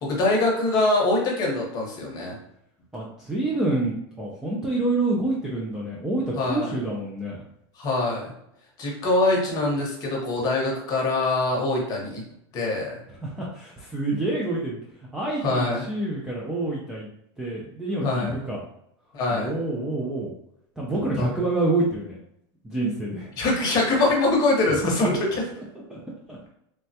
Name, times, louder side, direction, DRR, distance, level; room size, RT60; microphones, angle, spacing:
voice 1, 0.0-2.4 6.4-6.7 7.8-8.3 8.8-12.2 12.5-13.0 15.4-15.8 18.0-18.4 19.1-19.6 21.2-21.3 23.4-25.2, left 2 dB, 30° left, -1 dB, 0.8 m, -23 dB
voice 2, 2.9-7.4 13.2-14.8 15.1-17.1 17.4-18.6 19.3-20.3 20.8-22.2 22.6-23.3 24.7-25.1 25.9-26.0 26.3-26.4, right 2 dB, 5° right, -6 dB, 0.3 m, -27 dB
3.2 x 2.1 x 2.7 m, 0.76 s
supercardioid pair, 155°, 14 cm